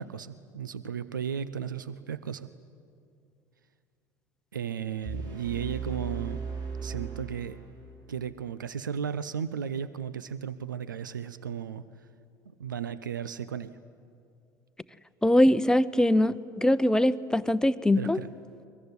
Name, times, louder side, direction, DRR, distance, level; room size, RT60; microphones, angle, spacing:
voice 1, 0.0-2.5 4.5-6.4 6.8-7.6 8.1-11.8 12.6-13.7 18.0-18.3, right 8 dB, 85° right, 15 dB, 0.6 m, -35 dB
sound 1, 5.0-8.1, right 5 dB, 40° right, 4.3 m, -37 dB
voice 2, 15.2-18.2, left 1 dB, 5° left, 14 dB, 0.9 m, -22 dB
23.5 x 21.5 x 9.7 m, 2.4 s
figure-of-eight pair, 65°, 10 cm